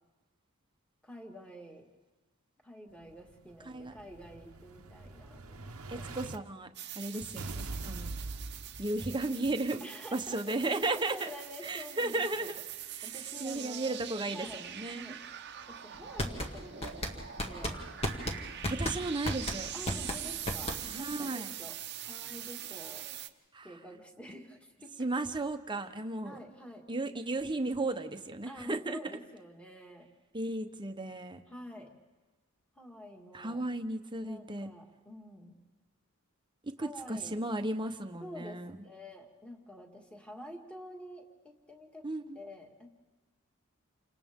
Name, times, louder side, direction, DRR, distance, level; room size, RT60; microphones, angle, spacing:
voice 1, 1.0-1.9 2.6-6.0 9.8-12.5 13.0-14.0 14.3-15.2 15.7-17.8 19.7-23.1 23.6-25.0 25.8-25.9 26.2-26.9 28.5-30.1 31.5-32.0 32.8-33.6 34.2-35.6 36.8-37.4 38.2-42.1 42.3-43.0, equal, 5° left, 1 dB, 2.0 m, -48 dB
Explosion, 3.0-6.4 7.4-9.4, right 2 dB, 90° right, 1.1 m, -43 dB
voice 2, 5.9-6.7 6.9-8.1 8.8-9.8 10.1-11.3 11.6-12.6 13.0-15.1 18.7-19.7 20.9-21.5 23.5-23.7 25.0-26.4 26.9-29.0 30.3-31.4 33.3-34.7 36.8-38.7 42.0-42.4, right 2 dB, 20° right, 7 dB, 1.0 m, -35 dB
sound 1, 6.7-23.3, right 10 dB, 50° right, 0.9 m, -43 dB
sound 2, 16.0-21.1, left 1 dB, 30° left, 1.8 m, -35 dB
29.5 x 26.0 x 3.7 m, 1.2 s
head